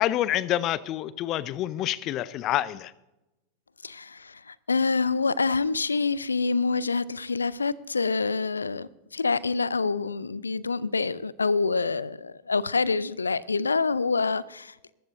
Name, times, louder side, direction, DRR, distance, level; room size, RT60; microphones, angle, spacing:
voice 1, 0.0-2.9, left 13 dB, 35° left, 0.6 m, -27 dB
voice 2, 3.8-14.9, left 4 dB, 75° left, 0.5 m, -26 dB
21.0 x 14.5 x 2.6 m
figure-of-eight pair, 85°, 0 cm